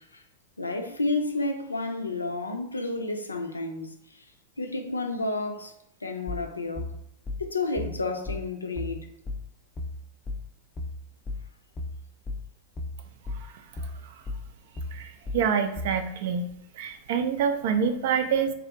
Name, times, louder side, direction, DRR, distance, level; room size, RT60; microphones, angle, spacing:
voice 1, 0.6-3.9 4.6-5.7 6.0-6.9 7.4-9.0, left 2 dB, 80° left, 5 dB, 0.4 m, -30 dB
sound 1, 6.3-16.1, left 2 dB, 20° left, 0.4 m, -35 dB
voice 2, 15.3-16.5 16.8-18.5, right 7 dB, 55° right, 7 dB, 0.4 m, -26 dB
3.3 x 2.4 x 2.9 m, 0.77 s
figure-of-eight pair, 90°, 0 cm